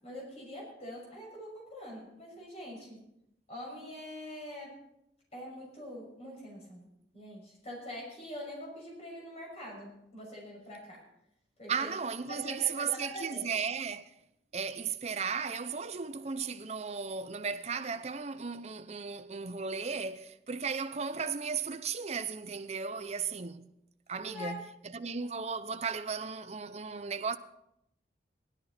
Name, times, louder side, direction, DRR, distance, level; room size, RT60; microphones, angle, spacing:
voice 1, 0.0-3.0 3.5-4.8 5.3-6.9 7.1-11.0 11.6-11.9 12.3-13.5 24.2-24.6, left 1 dB, 35° left, 6.2 m, -44 dB
voice 2, 11.7-14.1 14.5-23.7 24.1-27.4, right 5 dB, 40° right, 0.7 m, -35 dB
16.5 x 12.5 x 4.3 m
head